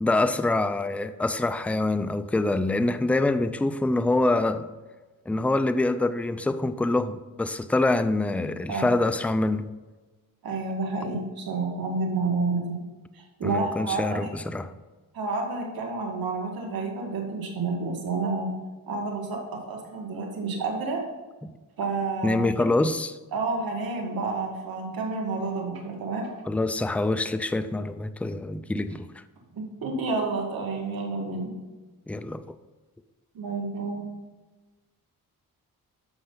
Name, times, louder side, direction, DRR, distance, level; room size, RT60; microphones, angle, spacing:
voice 1, 0.0-4.7 5.3-9.7 13.4-14.7 21.4-21.5 22.2-23.2 26.5-29.1 32.1-32.4, left 2 dB, 5° left, 0.4 m, -25 dB
voice 2, 10.4-12.6 13.1-14.3 15.1-18.5 18.9-21.0 21.8-22.7 23.3-26.3 29.5-31.6 33.3-34.1, right 3 dB, 80° right, 2.2 m, -30 dB
13.0 x 5.5 x 4.0 m
cardioid pair, 95°, 36 cm